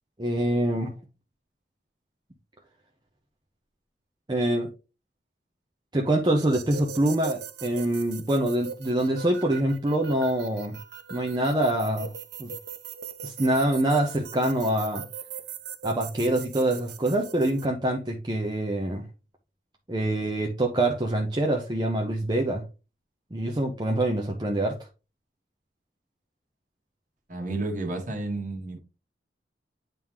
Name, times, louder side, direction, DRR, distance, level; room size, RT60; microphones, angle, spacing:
voice 1, 0.2-0.9 4.3-4.7 5.9-10.8 11.1-12.1 12.4-12.5 13.2-15.0 15.8-19.0 19.9-22.6 23.3-24.8, right 1 dB, 25° right, 0.8 m, -25 dB
sound 1, 6.4-17.6, right 7 dB, 65° right, 0.6 m, -40 dB
voice 2, 27.3-28.8, right 2 dB, 50° right, 1.6 m, -31 dB
9.2 x 3.6 x 3.0 m
head